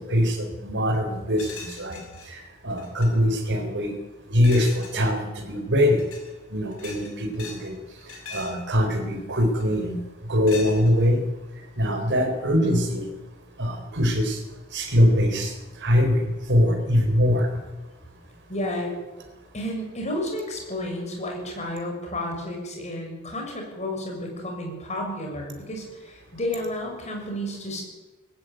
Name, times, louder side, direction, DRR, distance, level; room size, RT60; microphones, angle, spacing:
voice 1, 0.1-1.5 1.8-2.0 2.3-2.4 2.6-3.9 4.3-6.0 6.5-7.8 8.3-10.0 10.3-11.2 11.8-13.1 13.6-14.4 14.7-15.5 15.8-16.2 16.5-17.5, equal, 55° right, 5 dB, 4.0 m, -22 dB
sound 1, 1.4-2.3 2.7-3.1 4.4-5.0 5.9-6.3 6.7-7.7 8.0-8.6 9.6-9.9 10.5-11.1, left 5 dB, 65° left, 6.2 m, -41 dB
voice 2, 18.5-18.9 19.5-27.8, left 1 dB, 30° left, 1 dB, 6.4 m, -31 dB
19.5 x 16.5 x 9.2 m, 1.2 s
head